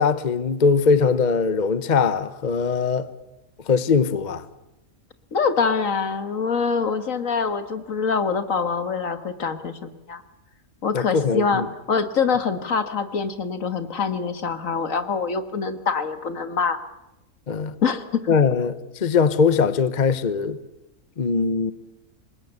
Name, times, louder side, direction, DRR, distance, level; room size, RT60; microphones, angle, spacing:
voice 1, 0.0-3.1 3.7-4.4 10.9-11.7 17.5-17.7 18.3-18.8 19.0-20.6 21.2-21.7, left 5 dB, 35° left, 1.0 m, -21 dB
voice 2, 5.3-10.2 10.8-16.8 17.8-18.2, left 5 dB, 70° left, 1.9 m, -25 dB
26.5 x 21.0 x 8.1 m
omnidirectional pair, 1.4 m